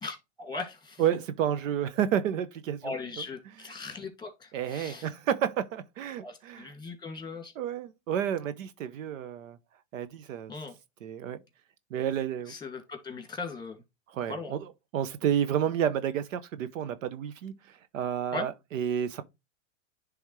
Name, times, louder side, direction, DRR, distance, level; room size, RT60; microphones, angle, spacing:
voice 1, 0.0-1.0 2.8-5.1 6.2-7.5 10.5-10.7 12.5-13.8 14.3-14.6 18.3-18.5, left 3 dB, 10° left, 2.0 m, -39 dB
voice 2, 1.0-3.8 4.5-6.7 7.5-9.6 9.9-10.5 11.0-11.4 11.9-12.5 14.1-19.2, right 9 dB, 75° right, 0.8 m, -31 dB
10.5 x 3.5 x 3.1 m
hypercardioid pair, 115°, 39 cm